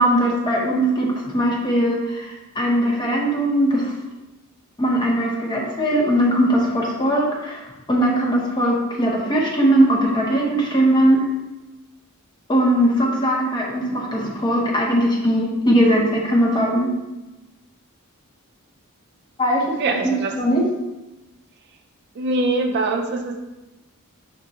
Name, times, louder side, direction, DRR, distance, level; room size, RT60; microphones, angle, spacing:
voice 1, 0.0-3.9 4.8-11.3 12.5-16.9 19.4-19.6 20.0-20.6, right 1 dB, 20° left, -2 dB, 0.8 m, -19 dB
voice 2, 19.8-20.3 22.2-23.4, right 2 dB, 50° right, 3 dB, 0.4 m, -23 dB
5.1 x 3.5 x 2.8 m, 1.0 s
head